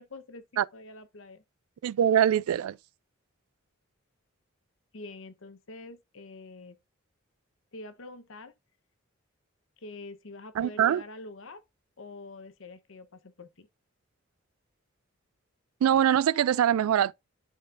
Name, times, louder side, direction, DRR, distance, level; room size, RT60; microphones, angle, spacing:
voice 1, 0.0-1.4 4.9-6.8 7.7-8.6 9.8-11.6 12.0-13.7, left 2 dB, 70° left, 0.9 m, -46 dB
voice 2, 1.8-2.8 10.6-11.0 15.8-17.1, right 10 dB, 90° right, 0.3 m, -23 dB
11.0 x 4.3 x 2.5 m
head